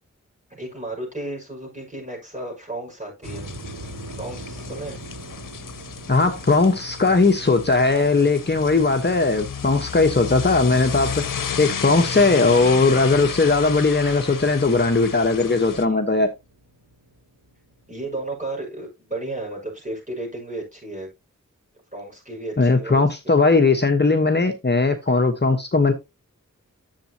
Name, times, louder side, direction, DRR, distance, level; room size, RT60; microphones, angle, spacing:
voice 1, 0.5-3.5 4.2-5.0 15.8-16.3 17.9-21.1 21.9-23.4, right 2 dB, 25° right, 5.7 m, -33 dB
sound 1, 3.2-15.9, left 7 dB, 85° left, 0.7 m, -33 dB
sound 2, 3.2-18.4, right 1 dB, 80° right, 2.1 m, -43 dB
voice 2, 6.1-11.2 11.6-16.3 22.6-25.9, left 3 dB, 35° left, 1.1 m, -18 dB
10.5 x 7.5 x 2.8 m
wide cardioid pair, 70°, 31 cm